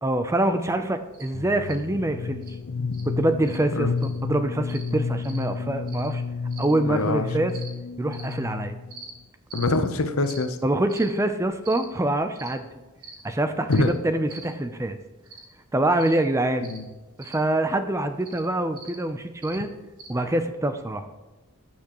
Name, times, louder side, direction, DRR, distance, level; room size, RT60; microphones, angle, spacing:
voice 1, 0.0-2.4 3.1-6.2 6.6-7.5 8.0-8.8 10.6-12.6 13.2-15.0 15.7-16.7 17.2-19.7 20.1-21.0, right 1 dB, 15° right, 8 dB, 0.5 m, -25 dB
sound 1, 1.1-1.3 1.6-1.8 2.4-2.5 2.9-3.1 3.4-3.6 4.0-4.2 4.7-4.9 5.2-5.4 5.9-6.1 6.5-6.7 7.5-7.7 8.1-8.3 8.9-9.1 9.5-9.7 10.2-10.4 10.9-11.1 11.6-11.8 12.4-12.5 13.0-13.2 13.7-13.9 14.3-14.5 15.3-15.5 16.0-16.2 16.6-16.8 17.2-17.4 18.2-18.4 18.8-19.0 19.4-19.6 20.0-20.1, right 4 dB, 90° right, 2.8 m, -43 dB
sound 2, 1.3-9.0, left 5 dB, 50° left, 0.3 m, -31 dB
voice 2, 6.9-7.3 9.5-10.6 13.7-13.9 16.6-16.9, left 3 dB, 65° left, 8 dB, 0.8 m, -24 dB
13.0 x 5.9 x 3.0 m, 1.2 s
head